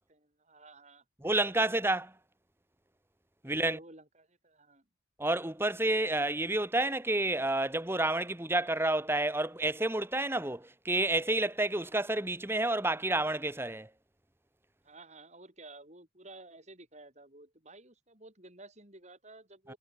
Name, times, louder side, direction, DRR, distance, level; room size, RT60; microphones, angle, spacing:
voice 1, 0.1-1.0 1.4-2.0 3.4-4.8 5.9-6.1 14.8-19.8, right 2 dB, 35° right, 7.7 m, -53 dB
voice 2, 1.2-2.1 3.4-3.8 5.2-13.9 19.7-19.8, right 2 dB, 15° right, 1.7 m, -29 dB
head